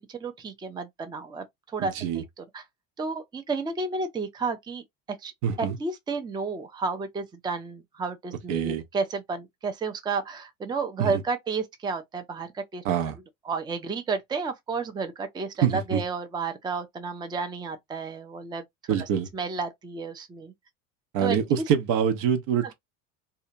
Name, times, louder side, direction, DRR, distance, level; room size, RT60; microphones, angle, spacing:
voice 1, 0.0-2.6 3.0-4.8 5.2-5.3 5.6-12.8 13.4-18.6 19.0-19.1 19.3-20.5 21.2-21.6, right 4 dB, 10° right, 0.5 m, -32 dB
voice 2, 1.8-2.2 5.4-5.8 8.5-8.8 11.0-11.2 12.8-13.2 15.6-16.0 18.9-19.3 21.1-22.7, right 8 dB, 60° right, 0.7 m, -25 dB
2.7 x 2.2 x 2.5 m
hypercardioid pair, 80°, 40 cm